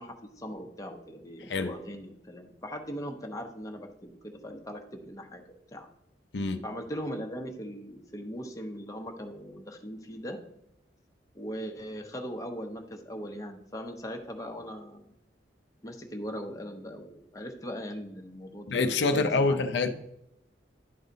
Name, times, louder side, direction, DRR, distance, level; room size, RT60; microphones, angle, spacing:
voice 1, 0.0-5.9 6.6-10.4 11.3-15.1 15.8-19.6, equal, 20° left, 3 dB, 0.9 m, -40 dB
voice 2, 18.7-19.9, left 3 dB, 70° left, 7 dB, 0.6 m, -26 dB
11.0 x 4.0 x 3.9 m, 0.82 s
head